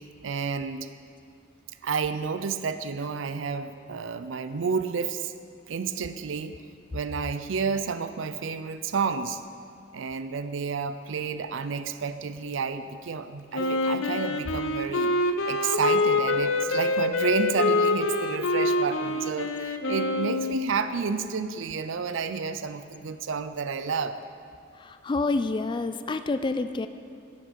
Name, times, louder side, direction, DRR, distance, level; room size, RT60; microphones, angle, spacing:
voice 1, 0.2-0.9 1.8-5.3 5.7-6.6 6.9-9.4 9.9-24.1, right 5 dB, 70° right, 11 dB, 0.5 m, -30 dB
Wind instrument woodwind instrument, 13.5-20.6, left 2 dB, 80° left, 0.6 m, -26 dB
voice 2, 24.8-26.9, left 3 dB, 25° left, 10 dB, 0.3 m, -28 dB
12.5 x 7.8 x 5.2 m, 2.3 s
head